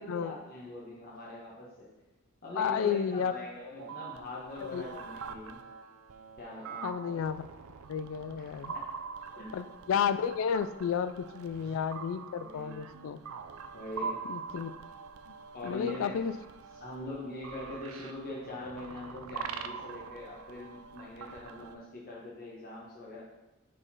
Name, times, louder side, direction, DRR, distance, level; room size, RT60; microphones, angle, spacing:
voice 1, 0.0-1.9 2.4-5.6 6.4-6.9 8.7-8.8 9.2-9.5 12.3-12.8 13.7-14.2 15.5-16.3 16.8-23.2, left 1 dB, 45° left, -4 dB, 1.2 m, -42 dB
voice 2, 2.6-3.3 4.7-4.8 6.8-7.5 7.9-8.8 9.5-13.2 14.3-14.7 15.3-15.4 15.6-16.3, left 7 dB, 65° left, 13 dB, 0.3 m, -32 dB
sound 1, 3.8-21.7, right 5 dB, 80° right, 0.4 m, -44 dB
4.9 x 4.4 x 5.6 m, 1.0 s
head